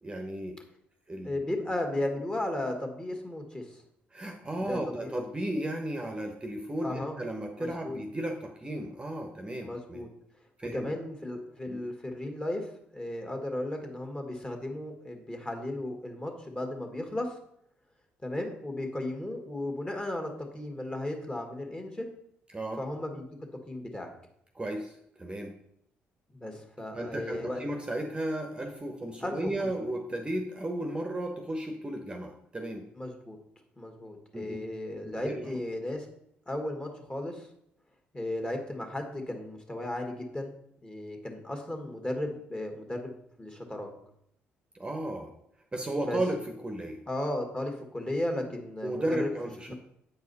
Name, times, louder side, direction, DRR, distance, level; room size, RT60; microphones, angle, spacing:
voice 1, 0.0-0.6 1.1-1.4 4.1-10.1 10.6-10.9 11.7-11.8 22.5-22.8 24.5-25.5 26.9-32.9 34.3-34.6 35.0-35.6 44.7-45.3 45.7-47.0 48.8-49.7, right 1 dB, 20° right, 3 dB, 0.9 m, -34 dB
voice 2, 1.2-3.8 4.7-5.2 6.8-7.2 7.6-8.0 9.6-10.1 10.7-17.4 18.2-22.1 22.8-23.3 23.7-24.1 26.3-27.6 29.2-29.9 33.0-33.4 33.8-36.1 36.5-37.5 38.1-40.5 40.8-43.9 46.0-46.2 47.1-49.3 49.7-49.8, left 1 dB, 20° left, 3 dB, 1.7 m, -35 dB
7.9 x 4.7 x 4.1 m, 0.73 s
supercardioid pair, 65°, 5 cm